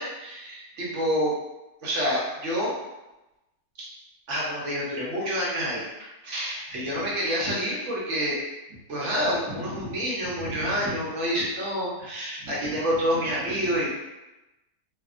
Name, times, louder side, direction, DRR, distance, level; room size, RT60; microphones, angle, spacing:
voice 1, 0.0-1.3 1.8-2.7 3.8-3.9 4.3-8.4 8.9-13.9, equal, 60° right, -5 dB, 0.9 m, -28 dB
2.7 x 2.1 x 2.4 m, 1.0 s
omnidirectional pair, 1.6 m